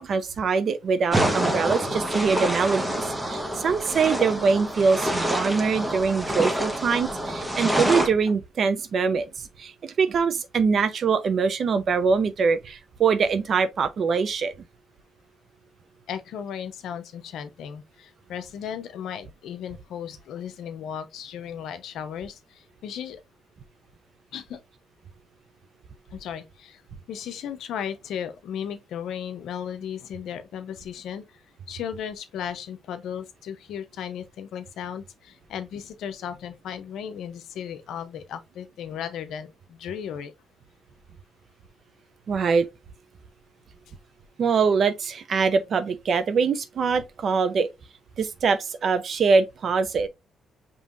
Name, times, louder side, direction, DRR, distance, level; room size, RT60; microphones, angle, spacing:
voice 1, 0.0-14.5 42.3-42.7 44.4-47.7 48.2-50.1, right 5 dB, 55° right, 0.7 m, -23 dB
sound 1, 1.1-8.1, right 1 dB, 15° right, 1.1 m, -27 dB
voice 2, 16.1-23.2 24.3-24.6 26.1-26.8 27.1-31.4 31.7-40.3 43.9-44.0, left 8 dB, 80° left, 0.7 m, -35 dB
5.4 x 3.0 x 2.5 m
cardioid pair, 95°, 0 cm